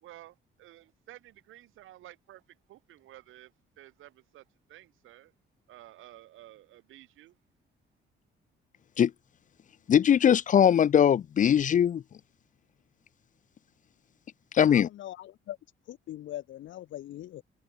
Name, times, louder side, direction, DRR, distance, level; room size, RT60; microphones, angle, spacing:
voice 1, 0.0-2.4 2.7-5.3 5.7-7.4, right 15 dB, 85° right, 2.2 m, -52 dB
voice 2, 9.9-12.0 14.5-14.9, left 9 dB, 40° left, 0.4 m, -21 dB
voice 3, 14.7-15.6 15.9-17.4, left 13 dB, 75° left, 1.2 m, -41 dB
cardioid pair, 90°, 20 cm